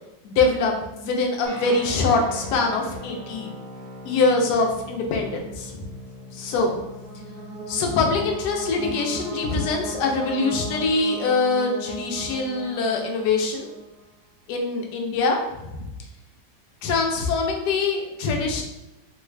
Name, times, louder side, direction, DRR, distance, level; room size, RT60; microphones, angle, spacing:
voice 1, 0.2-3.5 4.0-5.9 6.3-6.7 7.7-13.7 14.5-15.8 16.8-18.6, left 3 dB, 70° left, 2 dB, 1.1 m, -23 dB
sound 1, 1.4-10.3, left 2 dB, 10° left, 0.6 m, -42 dB
sound 2, 6.3-14.1, right 2 dB, 65° right, 0.9 m, -37 dB
3.1 x 2.4 x 3.1 m, 0.97 s
omnidirectional pair, 2.0 m